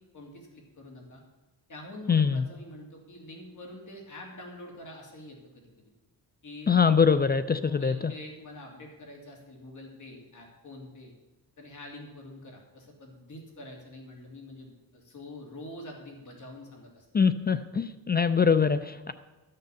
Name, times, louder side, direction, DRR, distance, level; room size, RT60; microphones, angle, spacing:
voice 1, 0.1-1.2 1.7-5.9 6.4-7.2 7.6-11.1 11.6-17.1, left 1 dB, 50° left, 0 dB, 2.8 m, -46 dB
voice 2, 2.1-2.4 6.7-8.1 17.1-19.1, left 6 dB, 25° left, 12 dB, 0.4 m, -23 dB
13.0 x 6.7 x 6.9 m, 1.1 s
cardioid pair, 130°, 40 cm